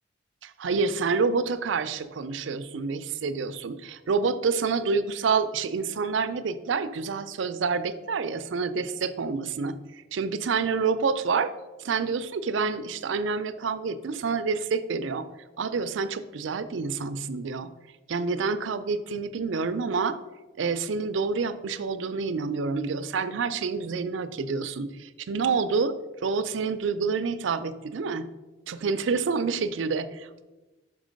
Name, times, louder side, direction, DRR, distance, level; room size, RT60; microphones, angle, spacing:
voice 1, 0.4-11.5 11.8-15.3 15.6-17.7 18.1-20.2 20.6-26.0 26.2-28.3 28.7-30.4, right 5 dB, 85° right, 12 dB, 0.4 m, -28 dB
5.6 x 5.3 x 5.1 m, 1.1 s
head